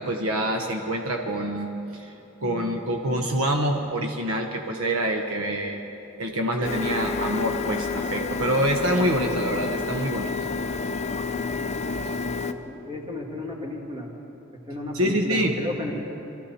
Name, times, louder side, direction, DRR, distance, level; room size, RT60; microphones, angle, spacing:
voice 1, 0.0-2.1 2.4-5.8 6.2-10.3 14.9-15.6, right 1 dB, 75° right, 3 dB, 1.0 m, -26 dB
Printer, 6.6-12.5, left 4 dB, 30° left, 0.5 m, -29 dB
voice 2, 12.2-14.1 14.7-15.9, left 1 dB, 25° right, -1 dB, 2.0 m, -34 dB
22.5 x 14.0 x 4.3 m, 2.9 s
head